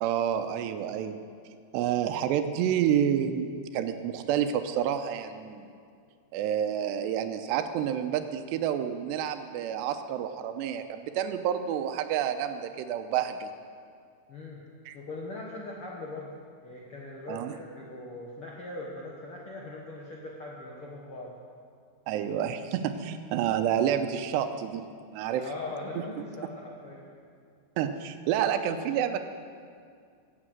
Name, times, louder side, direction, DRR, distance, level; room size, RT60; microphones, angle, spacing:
voice 1, 0.0-1.2 1.7-5.7 6.3-13.5 14.9-15.0 17.3-17.5 22.1-24.9 25.1-25.5 27.8-29.2, right 9 dB, 85° right, 8 dB, 2.8 m, -29 dB
voice 2, 14.3-14.6 14.9-16.3 16.6-21.4 25.4-27.1, left 2 dB, 70° left, -3 dB, 1.3 m, -40 dB
16.0 x 8.8 x 8.0 m, 2.2 s
omnidirectional pair, 5.0 m